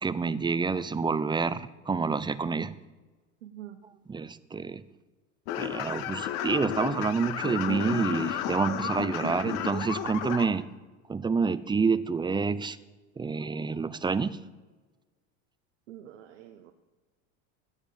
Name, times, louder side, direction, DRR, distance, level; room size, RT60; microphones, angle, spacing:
voice 1, 0.0-2.8 4.1-4.8 5.6-10.7 11.1-12.8 13.2-14.4, right 5 dB, 10° right, 16 dB, 0.7 m, -28 dB
voice 2, 3.4-3.8 9.2-9.3 15.9-16.7, right 12 dB, 85° right, 7 dB, 1.4 m, -44 dB
sound 1, 5.5-10.4, left 11 dB, 65° left, 1.9 m, -33 dB
17.0 x 13.5 x 5.2 m, 1.3 s
supercardioid pair, 115°, 36 cm